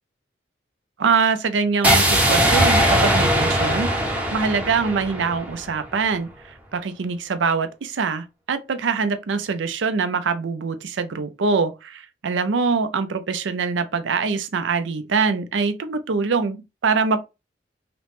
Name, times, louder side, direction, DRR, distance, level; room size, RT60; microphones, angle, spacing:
voice 1, 1.0-3.9 4.3-17.2, right 5 dB, 75° right, 0.5 m, -24 dB
sound 1, 1.8-5.9, equal, 10° right, 0.7 m, -20 dB
3.1 x 3.0 x 3.0 m
head